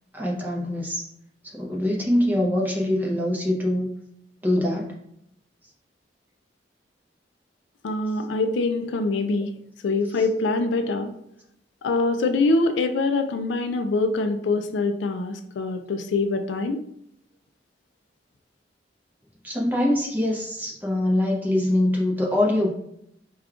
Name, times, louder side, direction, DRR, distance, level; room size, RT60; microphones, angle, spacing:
voice 1, 0.1-1.1 1.5-3.9 4.4-4.9 19.4-22.7, left 1 dB, 10° right, -2 dB, 0.6 m, -23 dB
voice 2, 7.8-9.5 9.8-11.1 11.8-16.8, left 3 dB, 80° left, 7 dB, 0.4 m, -24 dB
5.0 x 2.3 x 2.3 m, 0.76 s
head